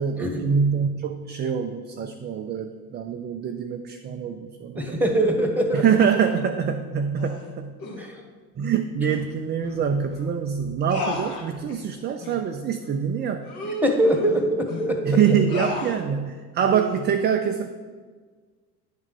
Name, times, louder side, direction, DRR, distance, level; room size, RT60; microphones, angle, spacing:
voice 1, 0.0-5.0 5.7-7.8 8.6-13.4 15.0-17.7, right 7 dB, 25° right, 5 dB, 0.4 m, -25 dB
voice 2, 4.8-5.8 8.0-8.2 13.8-15.2, right 1 dB, 5° right, 4 dB, 1.3 m, -23 dB
sound 1, 6.0-6.3 7.2-7.4 7.8-8.1 9.1-9.2 9.6-9.8 10.1-10.2 10.9-11.8 12.2-12.4 12.8-12.9 13.4-14.9 15.5-16.0 16.6-17.0, left 2 dB, 55° left, 1.7 m, -34 dB
9.6 x 3.6 x 5.3 m, 1.5 s
hypercardioid pair, 65°, 46 cm